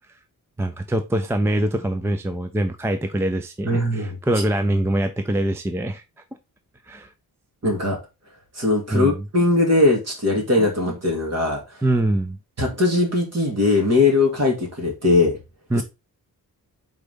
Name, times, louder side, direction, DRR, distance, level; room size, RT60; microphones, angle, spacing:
voice 1, 0.6-6.0 6.9-7.1 8.9-9.2 11.8-12.4 15.7-15.8, right 1 dB, 5° right, 0.4 m, -23 dB
voice 2, 3.7-4.2 7.6-8.0 8.6-11.6 12.6-15.4 15.7-15.8, left 2 dB, 45° right, 2.4 m, -20 dB
4.8 x 3.9 x 5.1 m
wide cardioid pair, 165°, 36 cm